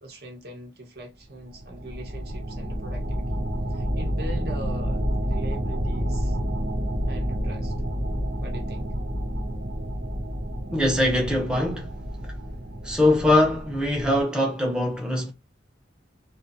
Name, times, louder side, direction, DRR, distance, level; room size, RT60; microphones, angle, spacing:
voice 1, 0.0-6.4 7.1-7.7 8.4-8.9, right 1 dB, 55° right, 0.8 m, -41 dB
sound 1, 1.4-14.2, equal, 90° right, 0.8 m, -29 dB
voice 2, 10.7-11.9 12.8-15.3, left 1 dB, 5° right, 0.5 m, -22 dB
2.6 x 2.4 x 2.5 m
head